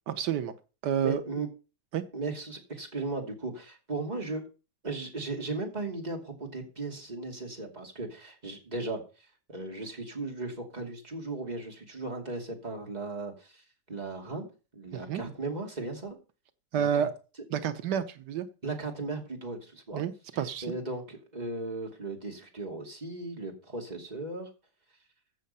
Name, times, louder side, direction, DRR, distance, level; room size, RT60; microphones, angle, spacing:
voice 1, 0.1-0.5 0.8-1.2 1.9-2.0 14.9-15.2 16.7-17.1 17.5-18.5 19.9-20.7, right 8 dB, 90° right, 11 dB, 1.6 m, -29 dB
voice 2, 1.0-1.5 2.1-4.4 4.8-13.6 13.9-14.5 14.7-16.2 16.7-17.1 18.6-20.0 20.6-24.5, right 3 dB, 25° right, 2 dB, 2.7 m, -37 dB
15.0 x 6.7 x 5.6 m, 0.34 s
omnidirectional pair, 1.7 m